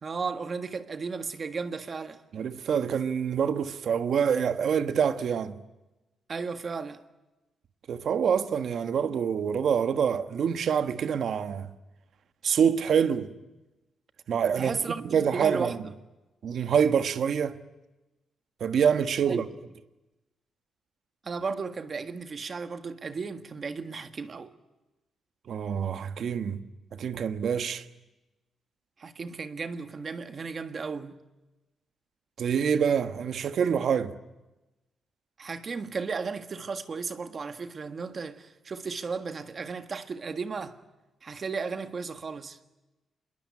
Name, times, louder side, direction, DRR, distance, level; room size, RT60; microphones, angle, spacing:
voice 1, 0.0-2.2 6.3-7.0 14.6-15.8 19.3-19.4 21.2-24.5 29.0-31.2 35.4-40.8 41.2-42.6, right 5 dB, 30° right, 1.6 m, -34 dB
voice 2, 2.3-5.6 7.9-11.7 12.4-13.3 14.3-14.8 15.0-15.8 16.4-17.6 18.6-19.5 25.5-26.6 26.9-27.9 32.4-34.2, right 7 dB, 50° right, 1.3 m, -26 dB
27.0 x 22.0 x 9.7 m
wide cardioid pair, 175°, 0 cm